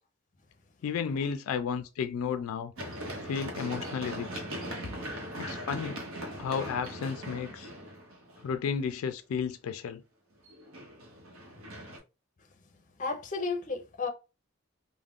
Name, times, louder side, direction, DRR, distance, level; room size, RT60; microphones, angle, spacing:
voice 1, 0.8-2.7 3.2-4.5 5.4-6.1 6.4-7.7 8.4-10.0, left 6 dB, 90° left, 0.3 m, -33 dB
Run, 2.8-8.6 10.5-12.0, right 1 dB, 75° right, 0.8 m, -40 dB
voice 2, 13.0-14.1, left 4 dB, 35° left, 0.5 m, -32 dB
2.4 x 2.1 x 3.5 m
head